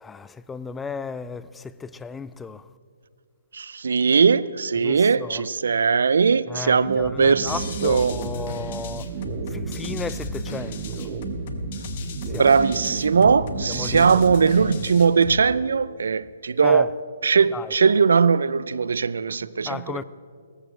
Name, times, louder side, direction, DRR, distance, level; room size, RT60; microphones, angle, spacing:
voice 1, 0.0-2.6 4.8-5.5 6.5-9.1 9.5-11.1 12.3-12.5 13.7-14.1 16.6-16.9 17.5-17.7 19.7-20.0, left 5 dB, 10° left, 0.3 m, -34 dB
voice 2, 3.5-8.1 12.4-16.9 17.2-20.0, right 5 dB, 75° right, 0.4 m, -20 dB
sound 1, 6.8-14.9, right 6 dB, 40° right, 1.0 m, -33 dB
sound 2, 7.5-15.5, left 4 dB, 45° left, 1.1 m, -36 dB
18.0 x 14.0 x 3.2 m
hypercardioid pair, 145°, 0 cm